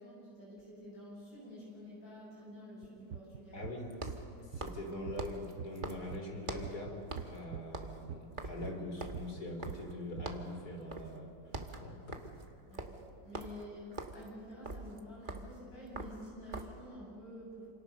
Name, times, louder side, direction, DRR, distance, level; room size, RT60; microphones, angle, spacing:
voice 1, 0.0-3.7 12.7-17.7, equal, 75° left, -5 dB, 8.5 m, -49 dB
sound 1, 0.6-0.7 3.9-6.8 7.1-7.4 7.7-10.0 10.3-10.6 10.9-11.2 11.4-16.9, right 2 dB, 30° right, 1.5 m, -44 dB
sound 2, 2.8-4.8 5.1-8.9 9.1-10.5, right 8 dB, 60° right, 0.9 m, -44 dB
voice 2, 3.5-4.1 4.4-11.3 11.8-12.0, left 1 dB, 55° left, 2 dB, 4.3 m, -43 dB
28.0 x 26.5 x 6.7 m, 2.6 s
omnidirectional pair, 2.1 m